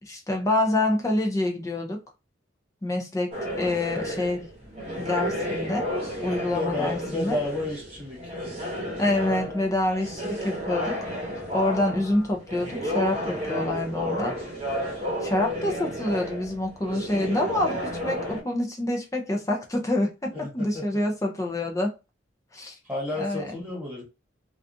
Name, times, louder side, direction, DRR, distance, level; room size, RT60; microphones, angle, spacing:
voice 1, 0.0-2.0 2.8-4.5 5.0-5.9 6.2-7.4 9.0-11.1 11.5-14.3 15.2-21.9 22.5-22.8 23.2-23.5, left 1 dB, 15° left, 0.4 m, -27 dB
sound 1, 3.3-18.4, equal, 30° right, 0.9 m, -32 dB
voice 2, 6.5-8.3 20.4-20.9 22.9-24.0, left 2 dB, 10° right, 1.4 m, -31 dB
2.4 x 2.3 x 2.5 m
head